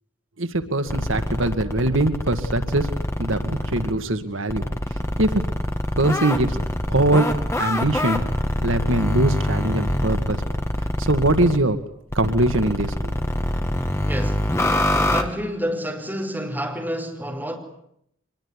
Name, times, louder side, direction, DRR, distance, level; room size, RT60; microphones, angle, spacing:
voice 1, 0.4-2.9 3.2-4.6 5.2-5.4 6.0-6.6 6.9-7.3 7.6-8.2 8.6-10.4 11.0-11.8 12.2-13.1, right 2 dB, 75° right, 1.9 m, -22 dB
sound 1, 0.9-3.9 4.5-11.6 12.1-15.2, left 1 dB, 15° left, 2.2 m, -25 dB
voice 2, 14.0-14.5 15.1-17.6, equal, 10° right, 5.1 m, -29 dB
25.0 x 22.0 x 10.0 m
head